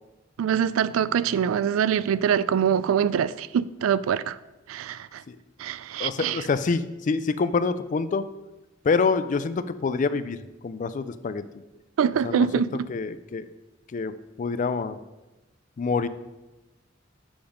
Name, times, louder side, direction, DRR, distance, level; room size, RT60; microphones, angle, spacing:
voice 1, 0.4-4.4 4.7-5.2 5.6-6.4 12.0-12.9, right 8 dB, 90° right, 17 dB, 0.3 m, -24 dB
voice 2, 6.0-8.2 8.8-10.4 10.6-11.4 12.2-12.5 12.9-13.5 13.9-14.1 14.4-15.0 15.8-16.1, left 4 dB, 40° left, 13 dB, 0.3 m, -26 dB
7.0 x 5.2 x 5.1 m, 1.1 s
head